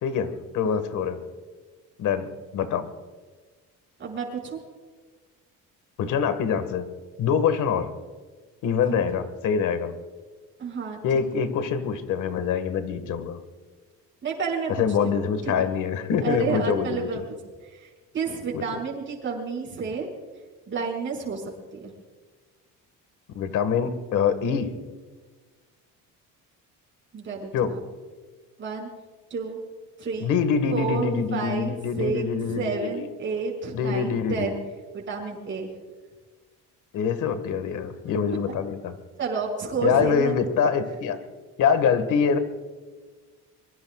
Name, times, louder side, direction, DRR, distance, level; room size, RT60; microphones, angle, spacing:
voice 1, 0.0-1.2 2.0-2.9 6.0-6.9 7.2-7.9 8.6-9.9 11.0-13.4 14.8-17.2 18.5-18.6 23.3-24.7 27.5-27.7 30.2-33.1 33.7-34.5 36.9-39.0 39.8-41.2 41.6-42.4, left 6 dB, 65° left, 10 dB, 1.7 m, -25 dB
voice 2, 4.0-4.6 8.9-9.0 10.6-11.0 14.2-15.7 16.2-17.4 17.7-20.1 20.7-21.9 27.1-27.8 28.6-28.9 29.3-29.6 30.0-30.3 30.7-34.6 34.9-35.7 39.2-40.4, right 5 dB, 35° right, 0 dB, 5.6 m, -30 dB
25.0 x 23.5 x 2.4 m, 1.4 s
cardioid pair, 150°, 33 cm